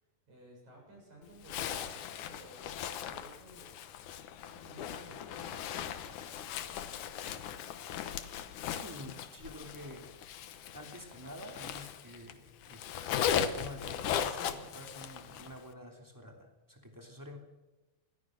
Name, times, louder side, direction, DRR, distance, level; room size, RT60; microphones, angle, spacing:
voice 1, 0.0-3.7 4.4-7.1, right 1 dB, 40° right, -2 dB, 8.4 m, -56 dB
Zipper (clothing), 1.4-12.3 12.6-15.6, left 9 dB, 80° left, 1.8 m, -38 dB
voice 2, 8.7-10.1 10.7-12.9 13.3-17.4, equal, 5° right, 3 dB, 1.6 m, -48 dB
26.5 x 20.5 x 6.4 m, 1.1 s
omnidirectional pair, 5.2 m